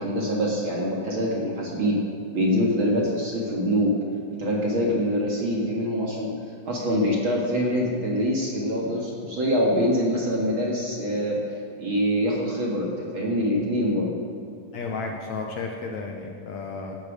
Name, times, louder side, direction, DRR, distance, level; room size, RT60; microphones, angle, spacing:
voice 1, 0.0-2.0 2.3-3.9 4.4-6.3 6.7-11.4 11.8-14.1, equal, 45° right, -3 dB, 2.2 m, -24 dB
voice 2, 14.7-17.0, left 4 dB, 65° left, 1 dB, 2.0 m, -33 dB
16.5 x 12.0 x 5.1 m, 2.5 s
omnidirectional pair, 4.0 m